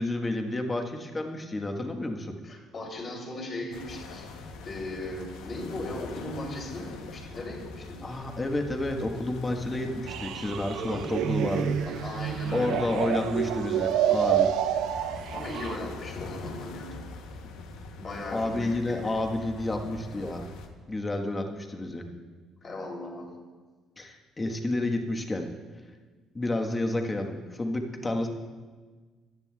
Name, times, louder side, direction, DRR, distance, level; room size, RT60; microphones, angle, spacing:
voice 1, 0.0-2.3 8.0-11.8 12.5-14.5 18.3-20.5 20.9-22.1 24.0-25.5 26.3-28.3, left 2 dB, 25° left, 3 dB, 1.4 m, -30 dB
voice 2, 2.4-4.3 4.6-8.0 10.7-11.1 11.9-13.4 15.2-17.0 18.0-19.1 22.6-23.3, left 2 dB, 45° left, -1 dB, 3.2 m, -38 dB
sound 1, 3.7-20.7, left 3 dB, 85° left, 0.9 m, -43 dB
sound 2, 10.1-15.8, right 10 dB, 75° right, 0.4 m, -28 dB
15.0 x 10.5 x 2.4 m, 1.4 s
supercardioid pair, 80°, 0 cm